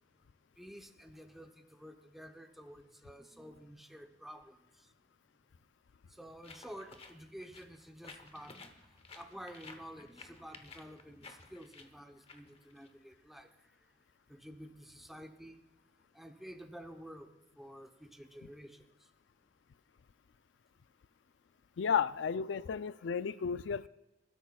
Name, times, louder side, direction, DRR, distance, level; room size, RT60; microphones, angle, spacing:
voice 1, 0.6-4.9 6.1-13.9 14.3-15.6 16.1-19.1 23.3-23.4, equal, ahead, 4 dB, 0.8 m, -51 dB
sound 1, 6.4-13.4, left 4 dB, 35° left, 1.0 m, -55 dB
voice 2, 21.8-23.9, left 7 dB, 80° left, 16 dB, 0.4 m, -33 dB
26.5 x 12.5 x 2.3 m, 0.97 s
head